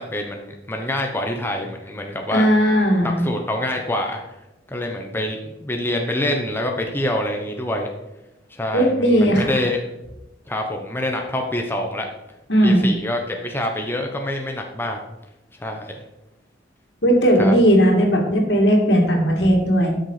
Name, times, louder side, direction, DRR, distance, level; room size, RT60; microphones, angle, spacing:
voice 1, 0.1-2.4 3.0-4.2 4.7-7.9 8.5-9.8 10.5-12.1 12.6-15.0 15.6-16.0 17.4-17.5, left 1 dB, 15° left, 2 dB, 0.9 m, -26 dB
voice 2, 2.3-3.2 8.7-9.6 12.5-12.9 17.0-19.9, equal, 70° left, 0 dB, 2.6 m, -17 dB
12.0 x 6.7 x 5.0 m, 0.96 s
head